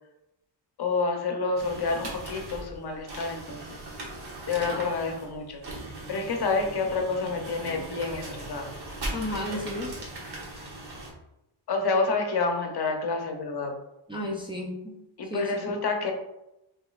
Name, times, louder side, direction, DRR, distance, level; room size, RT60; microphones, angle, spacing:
voice 1, 0.8-3.6 4.5-5.6 6.1-8.7 11.7-13.7 15.2-16.1, left 4 dB, 55° left, 3 dB, 0.7 m, -28 dB
sound 1, 1.6-11.1, right 2 dB, 55° right, 1.1 m, -39 dB
voice 2, 9.1-9.9 14.1-15.0 15.3-15.7, left 1 dB, 10° right, -3 dB, 0.4 m, -32 dB
5.0 x 3.1 x 2.4 m, 0.92 s
wide cardioid pair, 175°, 47 cm